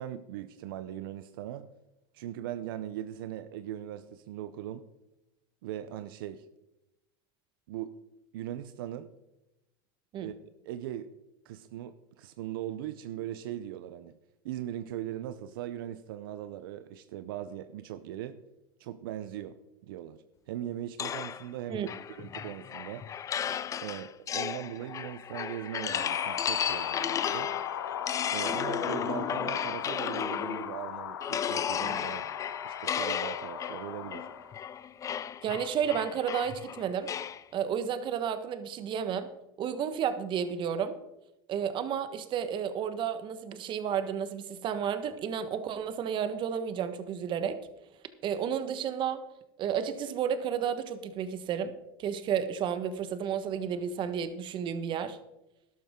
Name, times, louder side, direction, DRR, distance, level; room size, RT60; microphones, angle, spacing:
voice 1, 0.0-1.7 2.1-4.8 5.6-6.5 7.7-7.9 8.3-9.1 10.2-10.3 10.6-11.1 11.4-14.1 14.4-18.4 18.8-19.6 19.8-23.1 23.8-27.5 28.3-32.3 32.6-34.3, right 11 dB, 80° right, 11 dB, 0.7 m, -39 dB
sound 1, 21.0-30.8 31.2-37.4, left 8 dB, 30° left, 0.5 m, -34 dB
sound 2, 25.9-34.6, left 9 dB, 90° left, 1.2 m, -37 dB
voice 2, 35.4-37.1 37.5-39.3 39.6-41.0 41.5-47.6 48.2-49.2 49.6-51.7 52.0-55.2, right 8 dB, 45° right, 10 dB, 1.4 m, -32 dB
12.5 x 12.0 x 3.7 m, 0.92 s
supercardioid pair, 110°, 12 cm